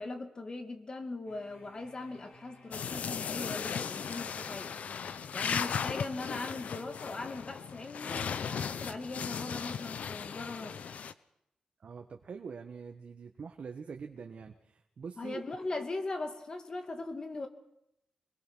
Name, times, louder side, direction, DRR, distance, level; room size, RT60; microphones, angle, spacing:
voice 1, 0.0-4.8 5.3-10.8 15.2-17.5, left 2 dB, 35° left, 7 dB, 2.4 m, -40 dB
sound 1, 1.2-6.6, left 2 dB, 60° left, 4.5 m, -58 dB
sound 2, 2.7-11.1, left 7 dB, 80° left, 0.9 m, -37 dB
voice 2, 11.8-15.4, right 5 dB, 60° right, 4 dB, 1.5 m, -44 dB
24.0 x 21.5 x 6.3 m, 0.80 s
wide cardioid pair, 150°, 2 cm